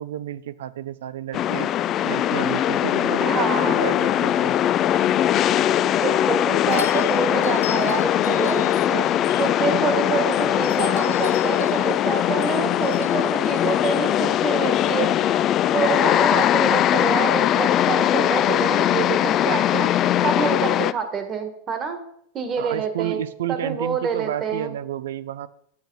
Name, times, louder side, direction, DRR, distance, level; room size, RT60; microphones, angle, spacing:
voice 1, 0.0-1.7 2.0-4.6 22.6-25.5, right 11 dB, 80° right, 16 dB, 0.5 m, -31 dB
sound 1, 1.3-20.9, left 11 dB, 40° left, 0.4 m, -21 dB
voice 2, 3.2-3.8 6.0-9.0 9.4-15.1 15.7-19.9 20.2-22.0 22.3-23.2 23.5-24.7, right 6 dB, 30° right, 7 dB, 1.6 m, -27 dB
sound 2, 6.7-9.8 10.3-14.9, left 9 dB, 85° left, 0.8 m, -40 dB
8.3 x 8.2 x 4.0 m, 0.67 s
hypercardioid pair, 115°, 0 cm